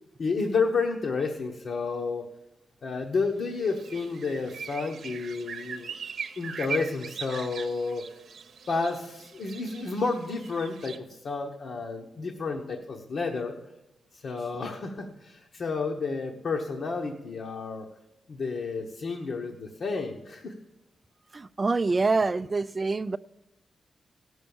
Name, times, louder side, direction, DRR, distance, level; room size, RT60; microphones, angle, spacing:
voice 1, 0.2-2.3 2.8-6.0 6.4-8.0 8.7-13.6 14.1-17.9 18.3-20.5, left 4 dB, 55° left, 1.0 m, -31 dB
sound 1, 3.4-11.0, right 6 dB, 65° right, 0.8 m, -40 dB
voice 2, 21.3-23.2, right 3 dB, 30° right, 0.4 m, -26 dB
16.0 x 6.3 x 7.1 m
wide cardioid pair, 125°, 0 cm